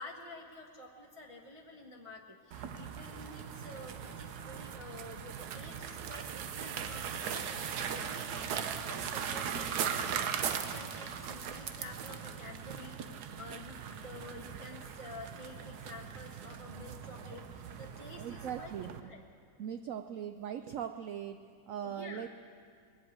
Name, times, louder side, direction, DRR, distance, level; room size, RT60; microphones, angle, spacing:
voice 1, 0.0-19.2 21.8-22.3, left 2 dB, 25° right, -2 dB, 0.9 m, -50 dB
sound 1, 2.5-19.0, right 7 dB, 65° right, 1.2 m, -39 dB
voice 2, 18.2-19.0 19.6-22.3, right 9 dB, 90° right, 9 dB, 0.7 m, -40 dB
21.0 x 7.9 x 8.7 m, 2.3 s
omnidirectional pair, 1.9 m